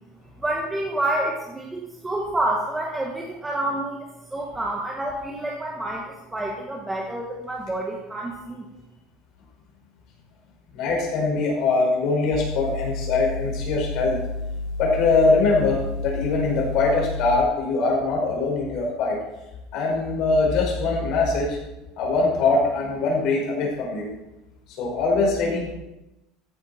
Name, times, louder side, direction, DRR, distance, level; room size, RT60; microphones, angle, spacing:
voice 1, 0.4-4.0 4.3-8.6, right 1 dB, 10° right, -2 dB, 1.4 m, -28 dB
voice 2, 10.7-14.2 14.8-19.2 19.7-21.6 22.0-24.1 24.8-25.7, left 3 dB, 45° left, -1 dB, 5.1 m, -22 dB
sound 1, 12.3-17.4, left 2 dB, 70° left, 2.8 m, -31 dB
14.0 x 11.0 x 4.3 m, 0.98 s
cardioid pair, 165°, 0 cm